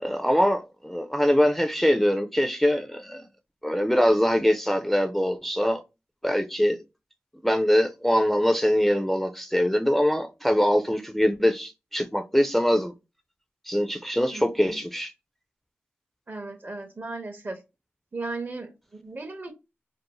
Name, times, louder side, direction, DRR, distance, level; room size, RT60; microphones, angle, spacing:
voice 1, 0.0-3.3 3.6-5.8 6.2-6.8 7.4-12.9 13.7-15.1, equal, 5° left, 0.4 m, -23 dB
voice 2, 14.3-14.8 16.3-17.6 18.1-19.5, right 3 dB, 45° right, 0.7 m, -36 dB
2.6 x 2.1 x 2.9 m
cardioid pair, 45°, 5 cm